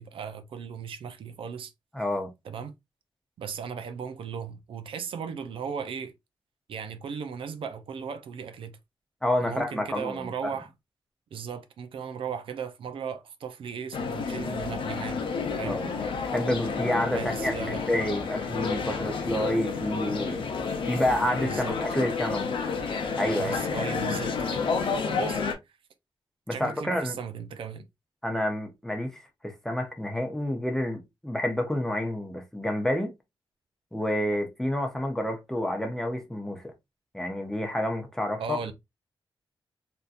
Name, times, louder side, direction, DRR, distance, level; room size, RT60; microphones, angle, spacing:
voice 1, 0.0-1.7 2.4-2.7 3.4-6.1 6.7-8.8 9.4-10.7 11.3-15.2 15.6-15.8 17.1-17.8 21.4-21.8 23.4-24.7 25.2-25.4 26.5-27.9 38.4-38.7, right 7 dB, 90° right, 0.5 m, -36 dB
voice 2, 1.9-2.3 9.2-10.5 15.6-15.9 16.3-20.4 20.8-22.6 23.2-23.6 26.5-27.2 28.2-33.1 33.9-36.6 37.1-38.6, left 1 dB, 5° left, 0.6 m, -29 dB
sound 1, 13.9-25.5, left 5 dB, 75° left, 0.7 m, -30 dB
3.5 x 2.7 x 2.4 m
wide cardioid pair, 180°, 9 cm